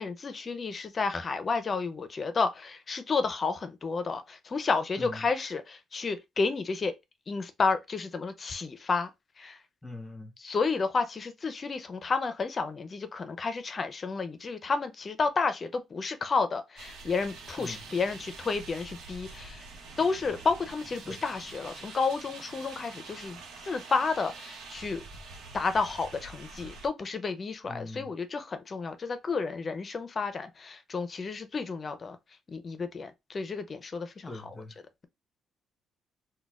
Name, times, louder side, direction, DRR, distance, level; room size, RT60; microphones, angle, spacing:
voice 1, 0.0-6.9 7.3-9.1 9.4-9.6 10.4-19.6 20.0-25.0 25.5-32.2 32.5-34.4, left 4 dB, 40° left, 0.5 m, -31 dB
voice 2, 9.8-10.3 17.6-17.8 21.0-21.2 27.6-28.1 34.3-34.8, left 2 dB, 15° left, 0.9 m, -42 dB
sound 1, 16.8-26.9, right 4 dB, 90° right, 0.9 m, -46 dB
4.0 x 2.2 x 2.3 m
cardioid pair, 90°, 0 cm